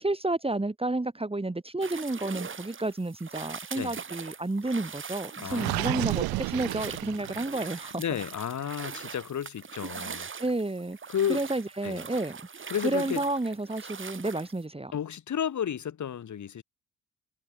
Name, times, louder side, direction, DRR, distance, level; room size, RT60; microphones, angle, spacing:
voice 1, 0.0-8.0 10.4-11.0 11.3-12.4 12.8-15.0, right 2 dB, 15° right, 3.7 m, -31 dB
sound 1, 1.8-14.6, right 6 dB, 30° right, 1.7 m, -42 dB
voice 2, 5.4-6.2 8.0-10.3 11.1-11.4 11.8-12.0 12.7-13.2 14.9-16.6, left 9 dB, 50° left, 2.3 m, -32 dB
Gurgling, 5.5-7.7, right 21 dB, 70° right, 1.1 m, -31 dB
hypercardioid pair, 50°, 38 cm